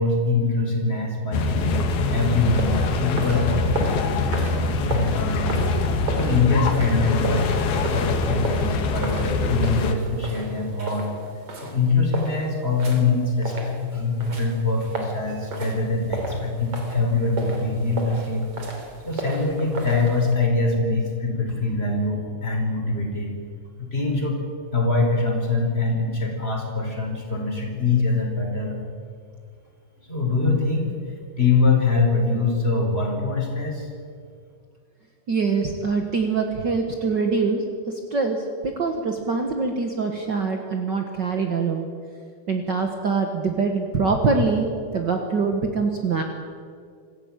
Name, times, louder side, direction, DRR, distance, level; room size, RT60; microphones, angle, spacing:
voice 1, 0.0-5.7 6.1-11.1 11.6-18.5 19.0-23.3 23.8-24.4 24.7-28.8 30.1-30.9 31.4-33.9, left 3 dB, 15° left, 0 dB, 4.7 m, -23 dB
sound 1, 1.3-9.9, left 3 dB, 75° left, 3.5 m, -24 dB
sound 2, 2.2-20.4, right 2 dB, 40° right, 3.8 m, -35 dB
voice 2, 35.3-41.9 42.5-46.2, right 4 dB, 65° right, 3 dB, 1.0 m, -24 dB
26.5 x 15.5 x 9.0 m, 2.2 s
omnidirectional pair, 4.5 m